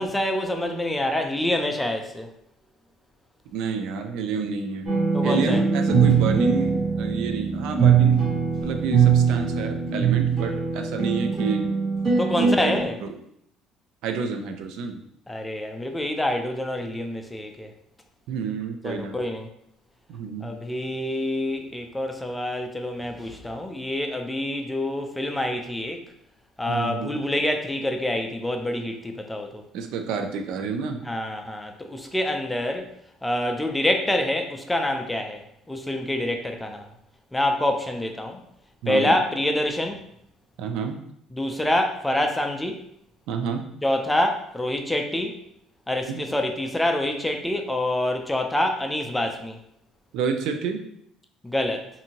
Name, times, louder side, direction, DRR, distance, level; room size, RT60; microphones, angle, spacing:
voice 1, 0.0-2.3 5.1-5.6 12.2-12.9 15.3-17.7 18.8-19.5 20.4-26.0 26.6-29.6 31.1-32.9 33.2-35.4 35.7-36.9 37.3-38.4 38.9-40.0 41.3-42.8 43.8-45.4 45.9-49.6 51.4-51.9, left 1 dB, 5° left, 4 dB, 0.4 m, -26 dB
voice 2, 3.5-4.9 5.2-8.2 8.6-11.7 12.4-13.1 14.0-15.0 18.3-19.2 20.1-20.5 26.7-27.1 29.7-31.0 38.8-39.2 40.6-41.0 43.3-43.6 46.1-46.2 50.1-50.8, right 5 dB, 75° right, 5 dB, 0.4 m, -29 dB
guitar Em, 4.9-12.8, right 6 dB, 45° right, 1.3 m, -21 dB
2.6 x 2.6 x 2.8 m, 0.72 s
cardioid pair, 125°, 0 cm